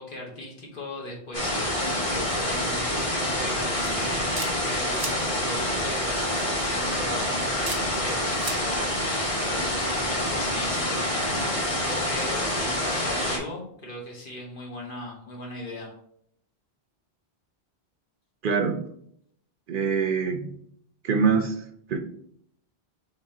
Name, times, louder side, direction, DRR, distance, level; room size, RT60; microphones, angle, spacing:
voice 1, 0.0-9.2 9.5-16.0, left 1 dB, 55° left, -1 dB, 1.3 m, -38 dB
sound 1, 1.3-13.4, left 1 dB, 35° left, 1.1 m, -27 dB
sound 2, 3.8-4.5 4.9-5.1 6.4-6.7 7.6-7.8 8.3-8.6, right 2 dB, 25° right, 0.7 m, -34 dB
voice 2, 18.4-18.9 19.7-20.5 21.0-21.6 21.9-22.0, right 5 dB, 65° right, 6 dB, 0.7 m, -24 dB
3.7 x 3.4 x 4.3 m, 0.68 s
omnidirectional pair, 1.0 m